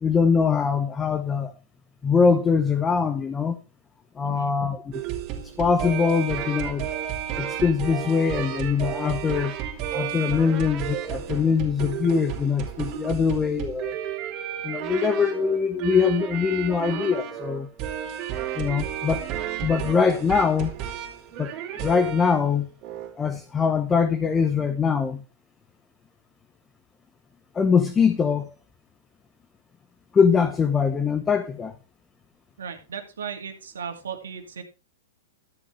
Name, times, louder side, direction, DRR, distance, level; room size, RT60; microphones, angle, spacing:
voice 1, 0.0-1.5 2.0-3.6 4.2-5.0 5.6-6.9 7.4-9.6 9.9-13.9 14.6-17.7 18.6-19.3 19.6-20.7 21.4-22.7 23.2-25.2 27.5-28.5 30.1-31.7, left 6 dB, 20° left, 1.0 m, -23 dB
voice 2, 4.2-4.5 32.6-34.6, right 7 dB, 80° right, 2.3 m, -36 dB
sound 1, 4.9-22.5 22.8-23.1, right 10 dB, 40° right, 3.1 m, -32 dB
13.0 x 7.8 x 3.4 m
hypercardioid pair, 115°, 0 cm